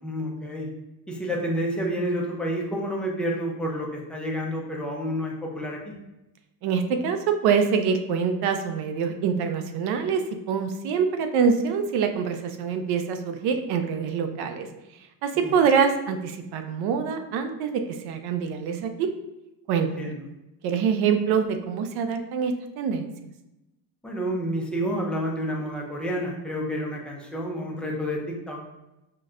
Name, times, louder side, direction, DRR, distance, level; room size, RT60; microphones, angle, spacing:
voice 1, 0.0-0.7 1.1-5.9 15.4-15.5 20.0-20.2 24.0-28.2 28.5-28.6, equal, 5° left, -2 dB, 0.4 m, -29 dB
voice 2, 6.6-10.2 10.5-14.7 15.2-19.1 19.7-20.2 20.6-23.1, right 6 dB, 55° right, 7 dB, 0.5 m, -25 dB
5.6 x 2.2 x 2.4 m, 0.94 s
cardioid pair, 130°, 45 cm